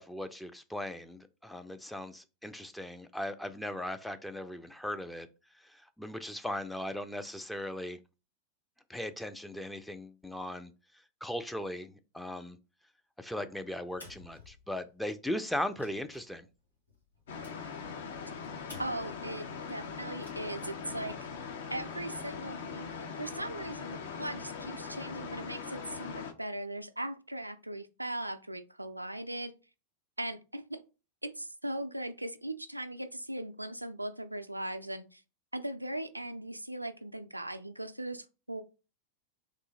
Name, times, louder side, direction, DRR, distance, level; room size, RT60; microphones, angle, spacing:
voice 1, 0.0-5.3 5.6-8.0 8.9-10.7 11.2-12.6 13.2-16.5, left 1 dB, 5° left, 0.4 m, -38 dB
sound 1, 13.9-15.1 15.5-19.3 20.1-20.7, left 2 dB, 85° left, 1.3 m, -54 dB
sound 2, 17.3-26.3, left 6 dB, 60° left, 0.7 m, -41 dB
voice 2, 18.8-21.2 21.7-29.5 30.2-30.8 31.2-35.2 35.5-38.6, right 1 dB, 85° right, 0.3 m, -39 dB
3.6 x 2.7 x 4.0 m
figure-of-eight pair, 90°, 0 cm